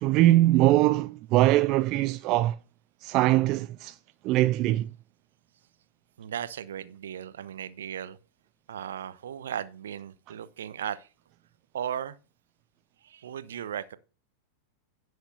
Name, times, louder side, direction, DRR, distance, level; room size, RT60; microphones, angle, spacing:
voice 1, 0.0-2.6 3.0-4.0 4.2-4.9, right 16 dB, 40° right, 0.3 m, -22 dB
voice 2, 6.2-8.2 8.7-11.1 11.7-12.2 13.0-14.0, right 9 dB, 65° right, 0.7 m, -36 dB
17.0 x 6.3 x 2.7 m
figure-of-eight pair, 90°, 0 cm